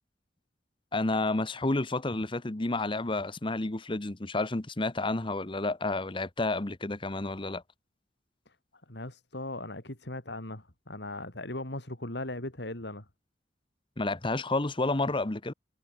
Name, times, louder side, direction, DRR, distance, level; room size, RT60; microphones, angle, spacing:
voice 1, 0.9-7.6 14.0-15.5, left 2 dB, 25° left, 1.0 m, -30 dB
voice 2, 8.9-13.0, left 2 dB, 65° left, 4.0 m, -38 dB
head